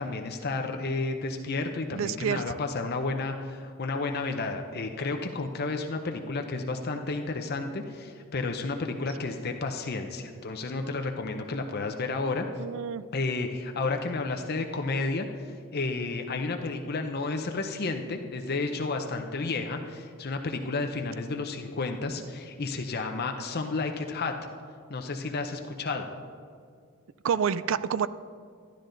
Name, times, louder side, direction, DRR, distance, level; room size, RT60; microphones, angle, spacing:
voice 1, 0.0-12.5 13.1-24.3 24.9-26.1, left 3 dB, 45° left, 4 dB, 0.7 m, -31 dB
voice 2, 1.9-2.4 12.6-13.0 27.2-28.1, right 7 dB, 65° right, 16 dB, 0.3 m, -28 dB
12.0 x 11.5 x 3.9 m, 2.1 s
head